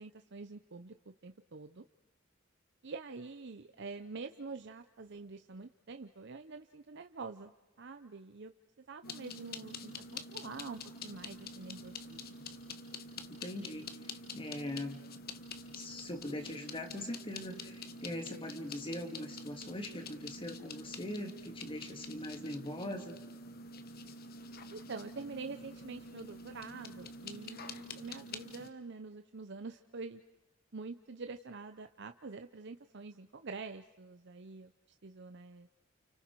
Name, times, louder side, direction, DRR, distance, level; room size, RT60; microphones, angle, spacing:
voice 1, 0.0-1.8 2.8-7.5 7.8-8.5 8.8-12.4 24.7-30.2 30.7-34.7 35.0-35.7, right 4 dB, 60° right, 8 dB, 0.8 m, -46 dB
sound 1, 9.0-28.7, left 3 dB, 50° left, 1.3 m, -47 dB
voice 2, 13.4-13.9 14.3-15.0 15.7-23.2, left 1 dB, 25° left, 5 dB, 2.4 m, -41 dB
30.0 x 29.5 x 4.7 m, 1.0 s
head